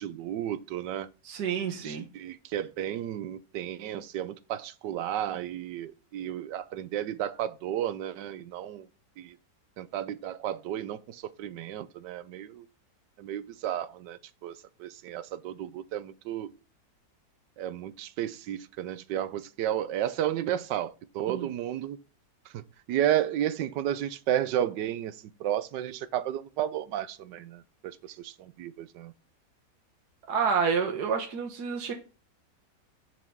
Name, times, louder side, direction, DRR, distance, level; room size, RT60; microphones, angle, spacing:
voice 1, 0.0-1.1 1.8-8.9 9.2-9.3 9.8-12.7 13.2-14.5 14.8-16.5 17.6-22.0 22.5-22.6 22.9-29.1, right 11 dB, 85° right, 1.3 m, -32 dB
voice 2, 1.2-2.0 21.3-21.5 30.3-31.9, right 6 dB, 70° right, 1.6 m, -29 dB
7.5 x 4.7 x 5.5 m
omnidirectional pair, 1.8 m